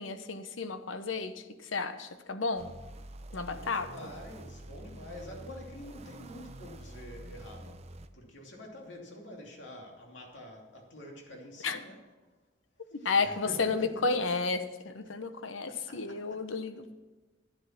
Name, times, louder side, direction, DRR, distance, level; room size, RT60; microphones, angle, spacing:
voice 1, 0.0-2.7 3.3-3.9 11.6-11.8 12.9-16.9, left 4 dB, 85° left, 10 dB, 0.9 m, -32 dB
sound 1, 2.6-8.1, right 1 dB, 35° right, 0.7 m, -47 dB
voice 2, 3.3-7.8 8.1-12.0 13.0-14.0 15.7-16.4, equal, 65° left, 0 dB, 2.8 m, -47 dB
11.5 x 10.5 x 6.0 m, 1.2 s
head